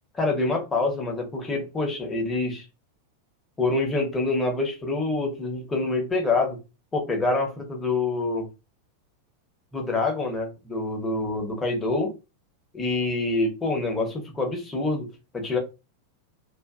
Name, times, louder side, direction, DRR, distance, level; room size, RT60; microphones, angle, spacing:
voice 1, 0.2-2.6 3.6-6.6 6.9-8.5 9.7-12.1 12.7-15.6, left 3 dB, 15° left, 0.9 m, -26 dB
2.5 x 2.5 x 2.4 m
figure-of-eight pair, 90°, 0 cm